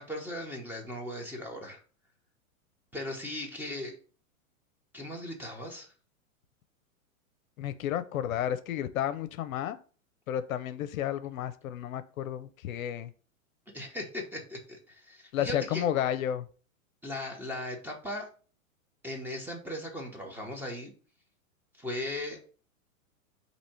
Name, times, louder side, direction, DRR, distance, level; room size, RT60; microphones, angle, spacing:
voice 1, 0.0-1.8 2.9-4.0 4.9-5.9 13.7-15.9 17.0-18.3 19.0-20.9 21.8-22.4, left 1 dB, 5° right, 1 dB, 0.9 m, -38 dB
voice 2, 7.6-9.8 10.3-13.1 15.3-16.5, left 10 dB, 70° left, 11 dB, 0.6 m, -32 dB
4.2 x 2.9 x 4.3 m, 0.39 s
hypercardioid pair, 120°, 42 cm